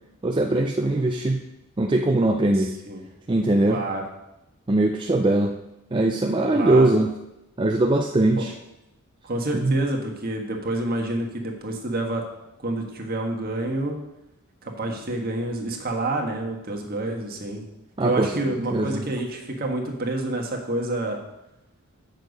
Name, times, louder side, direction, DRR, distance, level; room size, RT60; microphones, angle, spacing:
voice 1, 0.2-1.4 1.8-2.7 3.3-3.8 4.7-5.5 5.9-7.1 7.6-8.5 9.5-9.8 18.0-18.3 18.7-19.1, right 2 dB, 20° right, 2 dB, 0.4 m, -21 dB
voice 2, 2.5-3.0 3.7-4.0 6.5-6.9 8.4-8.5 9.2-12.2 12.6-14.0 14.6-17.6 18.0-21.2, right 2 dB, 45° right, 1 dB, 1.4 m, -28 dB
8.1 x 6.5 x 5.2 m, 0.89 s
head